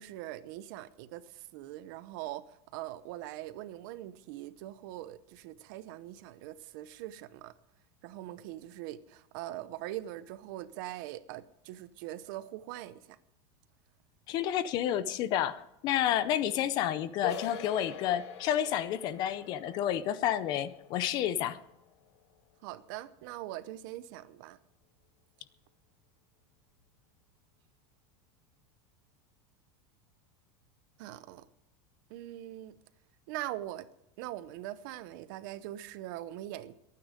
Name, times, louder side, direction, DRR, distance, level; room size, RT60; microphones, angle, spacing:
voice 1, 0.0-7.5 8.0-13.2 22.6-24.6 31.0-31.5 32.1-32.8 33.3-33.9 34.2-36.7, right 14 dB, 45° right, 14 dB, 0.8 m, -42 dB
voice 2, 14.3-21.6, left 11 dB, 30° left, 15 dB, 0.6 m, -30 dB
sound 1, 17.2-22.7, left 8 dB, 75° left, 1.7 m, -45 dB
23.5 x 9.6 x 5.1 m, 0.85 s
supercardioid pair, 180°, 14 cm